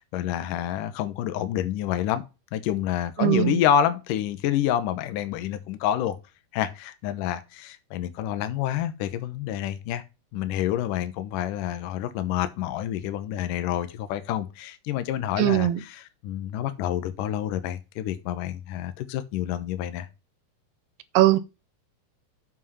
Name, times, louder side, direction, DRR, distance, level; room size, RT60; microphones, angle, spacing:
voice 1, 0.0-2.2 2.5-6.2 6.5-10.0 10.3-20.1, left 10 dB, 75° left, 2.1 m, -28 dB
voice 2, 3.2-3.6 15.4-15.8 21.1-21.4, right 14 dB, 85° right, 2.6 m, -20 dB
7.3 x 5.7 x 5.6 m
omnidirectional pair, 4.6 m